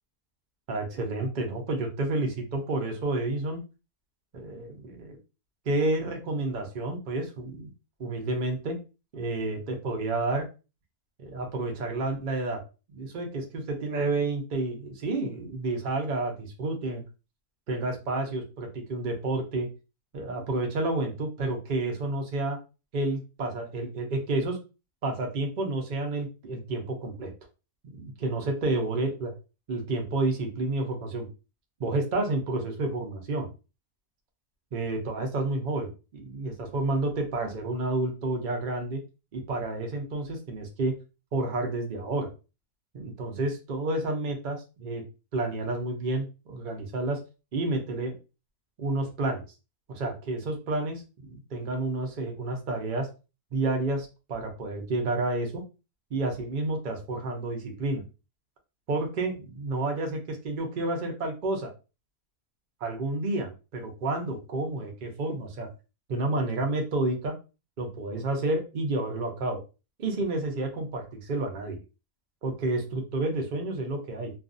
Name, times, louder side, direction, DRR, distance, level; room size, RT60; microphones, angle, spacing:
voice 1, 0.7-3.6 4.3-5.2 5.7-7.7 8.0-8.8 9.1-10.4 11.2-12.6 12.9-17.0 17.7-19.7 20.1-22.6 22.9-24.6 25.0-27.3 27.9-29.3 29.7-31.3 31.8-33.5 34.7-39.0 39.3-40.9 41.3-42.3 42.9-45.0 45.3-47.2 47.5-48.2 48.8-49.4 49.9-53.1 53.5-55.6 56.1-58.0 58.9-61.7 62.8-65.7 66.1-67.3 67.8-69.6 70.0-71.8 72.4-74.3, right 2 dB, 50° right, 2 dB, 0.5 m, -30 dB
2.5 x 2.4 x 2.5 m, 0.30 s
omnidirectional pair, 1.6 m